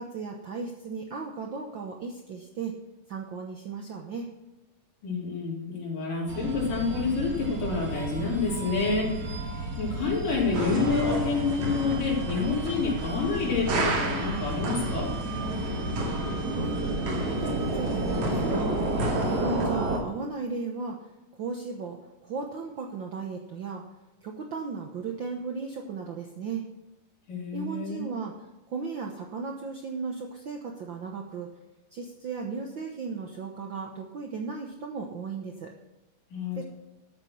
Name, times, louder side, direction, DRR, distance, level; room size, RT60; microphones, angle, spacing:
voice 1, 0.0-2.7 3.1-4.3 16.5-16.8 17.1-18.8 19.3-21.1 21.3-23.8 24.2-26.7 27.5-28.3 28.7-31.5 31.9-35.7 36.5-36.6, right 4 dB, 80° right, 1 dB, 1.0 m, -35 dB
voice 2, 5.0-9.4 9.8-15.1 27.3-28.0 36.3-36.6, left 4 dB, 80° left, -3 dB, 4.9 m, -28 dB
sound 1, 6.3-20.0, right 2 dB, 40° right, 1.7 m, -31 dB
sound 2, 10.5-19.7, right 1 dB, 65° right, 3.4 m, -33 dB
12.5 x 7.5 x 6.1 m, 1.0 s
omnidirectional pair, 3.7 m